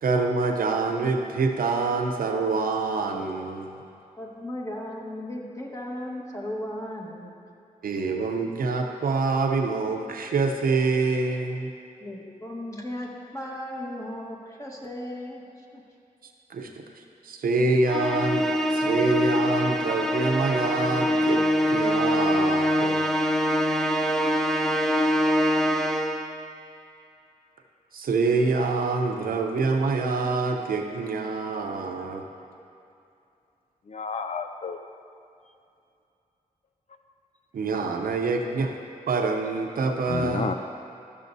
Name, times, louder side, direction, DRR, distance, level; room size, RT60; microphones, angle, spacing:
voice 1, 0.0-3.8 7.8-11.7 16.5-23.0 27.9-32.3 37.5-38.7 39.1-40.5, right 3 dB, 85° right, 3 dB, 0.7 m, -26 dB
voice 2, 4.2-7.3 12.0-15.8, left 1 dB, 20° left, -2 dB, 1.4 m, -36 dB
Musical instrument, 17.9-26.4, equal, 5° left, 0.6 m, -24 dB
voice 3, 33.9-34.8 40.1-40.5, left 5 dB, 50° left, 7 dB, 0.4 m, -30 dB
13.0 x 7.0 x 2.7 m, 2.6 s
cardioid pair, 70°, 14 cm